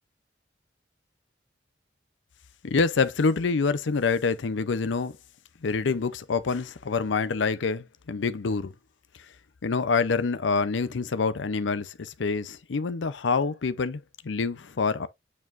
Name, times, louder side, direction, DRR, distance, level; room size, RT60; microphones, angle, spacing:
voice 1, 2.6-5.2 5.6-8.7 9.6-15.1, left 4 dB, 85° left, 0.5 m, -26 dB
8.4 x 4.6 x 2.4 m
head